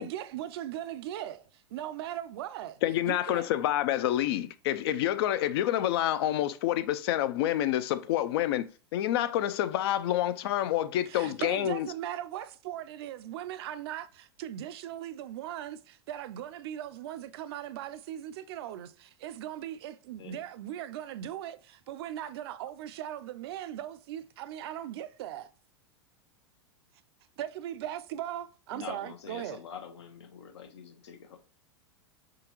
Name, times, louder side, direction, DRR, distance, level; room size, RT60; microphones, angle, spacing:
voice 1, 0.0-2.8 3.1-3.5 11.1-25.5 27.4-29.6, right 11 dB, 65° right, 0.4 m, -39 dB
voice 2, 2.8-11.9, left 12 dB, 65° left, 0.4 m, -28 dB
voice 3, 11.2-11.9 20.2-20.4 28.7-31.4, left 6 dB, 80° left, 0.9 m, -46 dB
4.8 x 3.7 x 2.9 m
hypercardioid pair, 105°, 14 cm